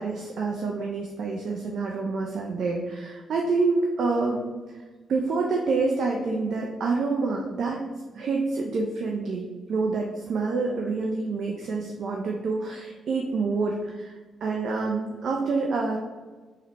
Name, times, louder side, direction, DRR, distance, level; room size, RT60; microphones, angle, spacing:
voice 1, 0.0-4.5 5.1-7.8 8.1-16.0, right 3 dB, 65° right, 0 dB, 0.3 m, -27 dB
3.5 x 2.1 x 3.2 m, 1.3 s
hypercardioid pair, 45°, 0 cm